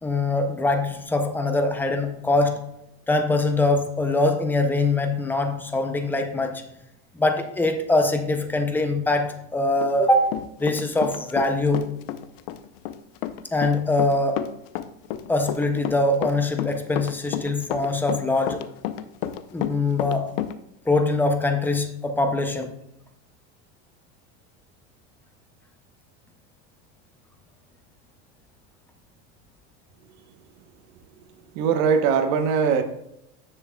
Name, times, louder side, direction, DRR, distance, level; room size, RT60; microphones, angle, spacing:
voice 1, 0.0-2.7 3.1-6.7 7.1-10.3 10.6-11.9 13.5-14.4 15.3-18.6 19.5-20.4 20.9-22.7, left 2 dB, 5° left, 0.4 m, -23 dB
Run, 9.8-11.5 11.7-20.5, left 11 dB, 55° left, 0.6 m, -30 dB
voice 2, 31.5-32.8, right 6 dB, 50° right, 0.9 m, -21 dB
9.7 x 7.2 x 2.2 m
supercardioid pair, 155°, 34 cm